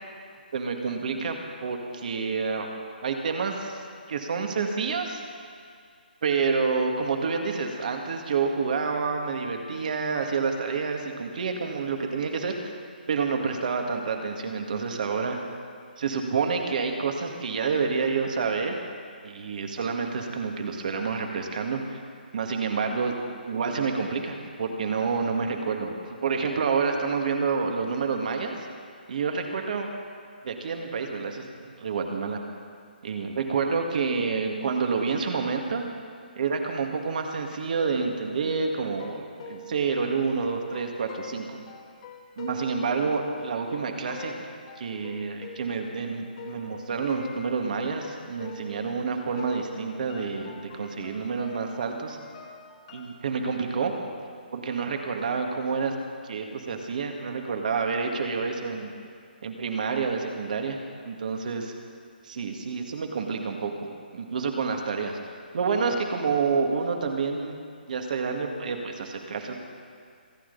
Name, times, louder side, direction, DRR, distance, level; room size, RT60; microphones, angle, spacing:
voice 1, 0.5-2.7 3.0-3.8 4.1-5.2 6.2-12.7 13.1-15.4 16.0-18.8 19.2-22.0 22.3-23.1 23.5-25.9 26.2-28.6 29.1-29.9 30.4-32.4 33.0-35.8 36.4-41.6 42.4-44.3 44.8-52.2 52.9-53.9 54.5-56.0 56.2-58.9 59.4-61.7 62.2-65.2 65.5-67.5 67.9-69.5, right 5 dB, 50° right, 3 dB, 2.1 m, -28 dB
sound 1, 38.9-49.1 49.4-53.2, left 3 dB, 35° left, 1.7 m, -45 dB
28.0 x 9.6 x 4.1 m, 2.3 s
hypercardioid pair, 155°, 5 cm